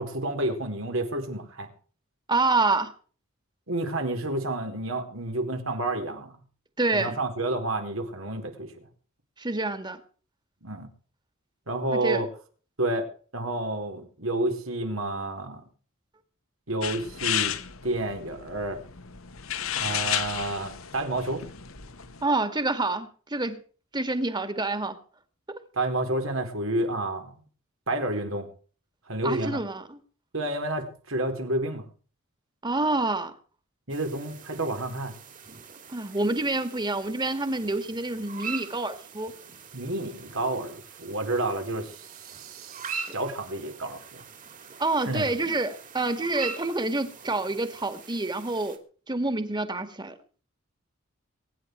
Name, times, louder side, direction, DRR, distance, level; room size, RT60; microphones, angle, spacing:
voice 1, 0.0-1.7 3.7-6.3 6.9-8.7 10.6-10.9 11.7-12.3 12.8-13.1 13.3-15.6 16.7-17.5 17.8-18.8 19.8-21.5 25.7-27.3 27.9-28.5 29.1-29.6 30.3-31.8 33.9-35.1 39.7-44.2 45.1-45.3, right 2 dB, 75° right, 4 dB, 4.4 m, -30 dB
voice 2, 2.3-2.9 6.8-7.1 9.4-10.0 11.9-12.2 22.2-23.6 23.9-25.0 29.2-30.0 32.6-33.3 35.9-39.3 44.8-48.8 49.1-50.1, right 2 dB, 20° right, 10 dB, 2.3 m, -27 dB
sound 1, 16.8-22.2, left 10 dB, 85° left, 1.8 m, -32 dB
sound 2, 33.9-48.8, right 6 dB, 40° right, 3.3 m, -42 dB
23.5 x 10.5 x 4.7 m, 0.42 s
head